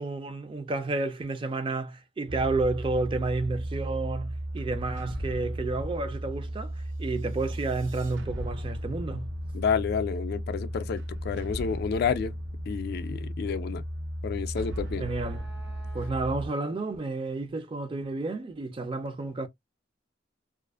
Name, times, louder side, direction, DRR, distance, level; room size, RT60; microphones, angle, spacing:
voice 1, 0.0-6.7 7.0-9.3 15.0-15.5 15.9-19.5, right 3 dB, 30° right, 0.4 m, -31 dB
sound 1, 2.3-16.5, right 1 dB, 90° right, 0.6 m, -35 dB
voice 2, 9.5-12.3 12.7-13.8 14.2-15.1, left 6 dB, 55° left, 0.3 m, -30 dB
sound 2, 14.3-16.6, right 1 dB, 65° right, 0.9 m, -54 dB
2.4 x 2.4 x 2.2 m
head